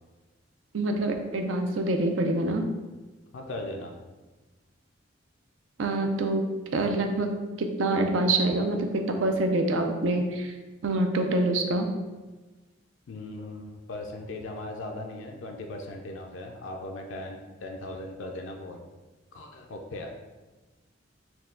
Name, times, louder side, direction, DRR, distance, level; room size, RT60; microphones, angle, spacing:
voice 1, 0.7-2.7 5.8-7.3 7.6-10.5 10.8-11.9, right 2 dB, 80° right, 5 dB, 0.5 m, -26 dB
voice 2, 3.3-4.0 13.1-18.8 19.3-20.1, left 2 dB, 75° left, 2 dB, 0.4 m, -38 dB
4.5 x 2.3 x 3.7 m, 1.2 s
head